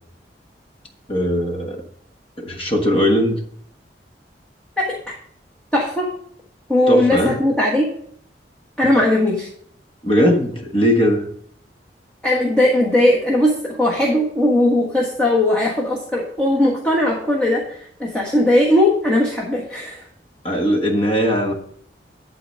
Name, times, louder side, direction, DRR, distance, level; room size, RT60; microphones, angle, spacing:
voice 1, 1.1-1.8 2.4-3.4 6.9-7.4 10.0-11.2 20.4-21.5, equal, 30° left, 3 dB, 1.3 m, -19 dB
voice 2, 5.7-6.1 6.7-7.9 8.8-9.5 12.2-20.0, left 1 dB, 5° left, -4 dB, 1.4 m, -18 dB
11.5 x 4.0 x 6.4 m, 0.63 s
head